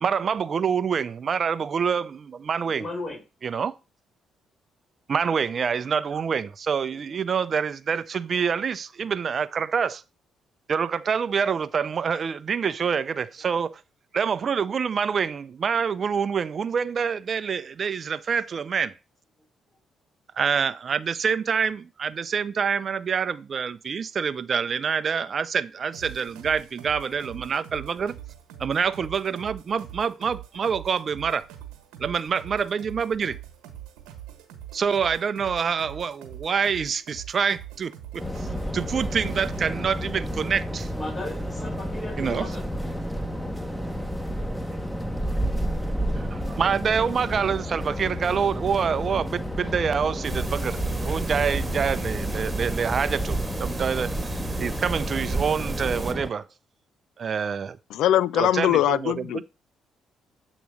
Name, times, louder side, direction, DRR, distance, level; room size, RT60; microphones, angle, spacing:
voice 1, 0.0-2.8 3.4-3.7 5.1-10.0 10.7-13.8 14.1-18.9 20.4-28.2 28.6-31.5 32.0-33.4 34.7-38.5 38.7-40.9 42.2-42.5 46.2-54.1 54.6-56.5 57.2-57.8 58.3-59.4, right 6 dB, 50° right, 0.5 m, -26 dB
voice 2, 2.7-3.2 40.9-42.6, left 2 dB, 50° left, 4.3 m, -35 dB
sound 1, 25.9-39.6, right 11 dB, 90° right, 1.2 m, -43 dB
sound 2, 38.2-56.3, equal, 5° left, 1.1 m, -31 dB
sound 3, 50.2-56.1, right 3 dB, 20° right, 1.3 m, -32 dB
voice 3, 57.9-59.4, left 12 dB, 80° left, 0.3 m, -22 dB
8.2 x 3.1 x 6.2 m
supercardioid pair, 60°, 0 cm